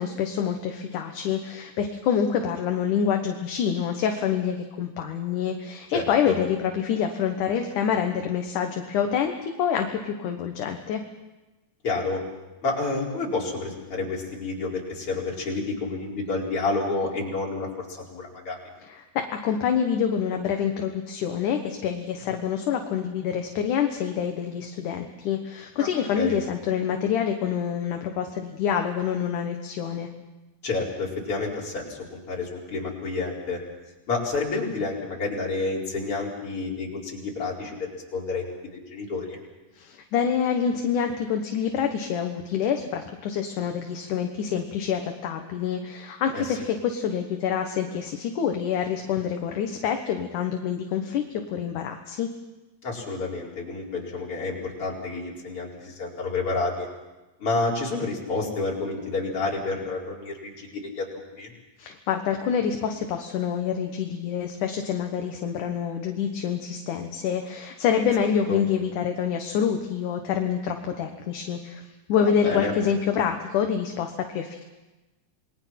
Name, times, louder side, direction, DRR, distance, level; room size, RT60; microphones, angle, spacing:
voice 1, 0.0-11.0 18.8-30.1 39.8-52.3 61.8-74.6, left 8 dB, 65° left, 4 dB, 2.6 m, -27 dB
voice 2, 5.9-6.4 11.8-12.2 12.6-17.7 18.1-18.6 25.8-26.4 30.6-33.6 34.1-38.4 38.7-39.4 46.3-46.6 52.8-56.9 57.4-61.5 68.5-68.6 72.2-72.7, left 3 dB, 35° left, -3 dB, 5.3 m, -29 dB
28.5 x 21.5 x 5.9 m, 1.1 s
omnidirectional pair, 4.1 m